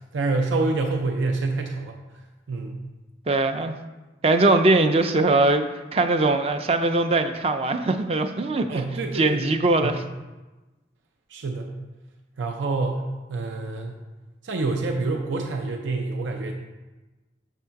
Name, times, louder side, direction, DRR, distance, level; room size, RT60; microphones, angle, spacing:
voice 1, 0.1-2.0 2.5-2.8 8.7-9.5 9.8-10.0 11.3-11.7 12.4-14.0 14.4-16.5, right 3 dB, 90° right, 3 dB, 0.6 m, -27 dB
voice 2, 3.3-3.8 4.2-5.6 5.9-8.8 9.1-10.0, right 2 dB, 30° right, 7 dB, 0.4 m, -21 dB
7.1 x 3.6 x 5.7 m, 1.1 s
head